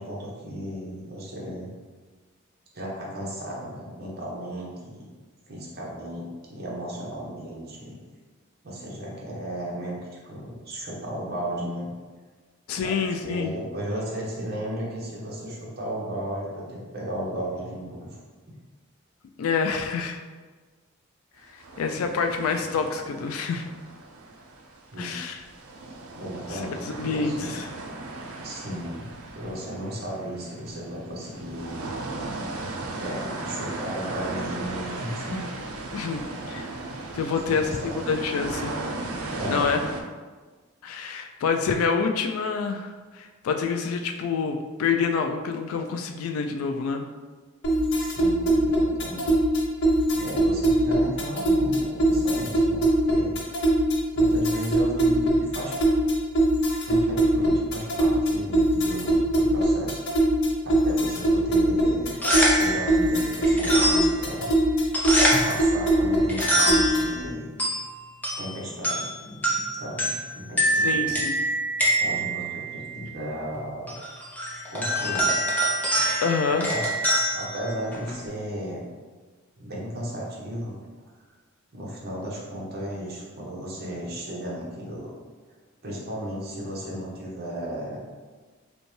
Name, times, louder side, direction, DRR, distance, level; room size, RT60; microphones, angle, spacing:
voice 1, 0.0-1.7 2.7-5.1 5.5-8.0 8.6-10.0 10.2-11.9 12.7-18.2 24.9-25.2 26.2-27.6 28.4-31.9 33.0-35.4 35.9-36.3 37.3-37.9 39.3-39.7 48.0-49.3 50.1-53.6 54.1-55.7 56.9-60.0 60.6-62.1 62.6-64.5 65.4-67.5 68.4-71.2 72.0-73.9 74.7-75.4 76.5-76.9 77.3-78.8 79.6-80.7 81.7-85.1 85.8-88.0, equal, 50° right, -4 dB, 1.0 m, -35 dB
voice 2, 12.7-13.5 19.4-20.2 21.5-23.7 25.0-25.4 26.5-26.6 27.0-27.7 35.9-36.7 37.1-37.7 38.1-38.9 39.5-39.8 40.8-47.0 70.7-71.4 76.2-76.7, left 5 dB, 85° left, 5 dB, 0.3 m, -27 dB
sound 1, 21.6-25.0 25.4-40.0, right 2 dB, 85° right, 0.5 m, -36 dB
sound 2, 47.6-67.2, right 1 dB, 55° left, 0.6 m, -22 dB
sound 3, 62.0-78.3, right 1 dB, 10° left, 0.6 m, -26 dB
5.1 x 2.2 x 3.2 m, 1.4 s
head